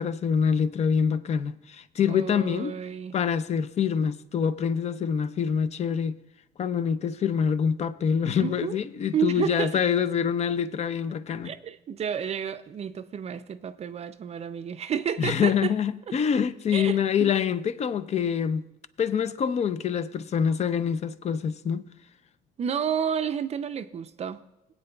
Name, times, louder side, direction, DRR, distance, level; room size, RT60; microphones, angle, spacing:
voice 1, 0.0-2.7 3.1-6.2 6.6-11.5 15.2-18.6 19.0-21.8, left 7 dB, 40° left, 0.5 m, -25 dB
voice 2, 2.1-3.1 8.4-8.8 9.1-9.8 11.4-15.7 16.7-17.3 22.6-24.4, right 8 dB, 40° right, 0.4 m, -31 dB
20.0 x 8.9 x 2.3 m
cardioid pair, 110°, 17 cm